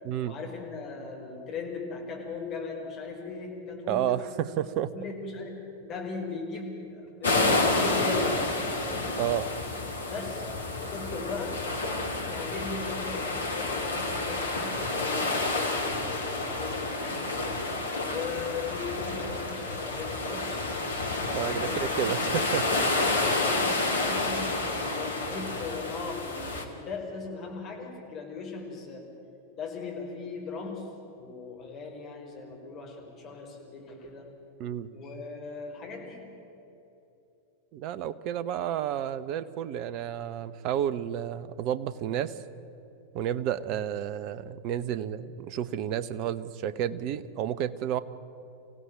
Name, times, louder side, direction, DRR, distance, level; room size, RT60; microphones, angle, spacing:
voice 1, 0.2-4.3 4.9-8.9 10.1-10.5 10.8-11.6 12.3-17.3 18.0-20.7 21.5-22.1 22.9-24.6 24.9-29.0 29.6-34.3 34.9-36.3, left 4 dB, 35° left, 0 dB, 5.1 m, -38 dB
voice 2, 3.9-4.9 9.2-9.5 21.3-22.7 34.6-34.9 37.7-42.3 43.1-48.0, right 10 dB, 40° right, 15 dB, 0.9 m, -31 dB
sound 1, 7.2-26.6, left 2 dB, 75° left, 2.4 m, -29 dB
25.5 x 16.5 x 9.1 m, 2.9 s
figure-of-eight pair, 90°, 0 cm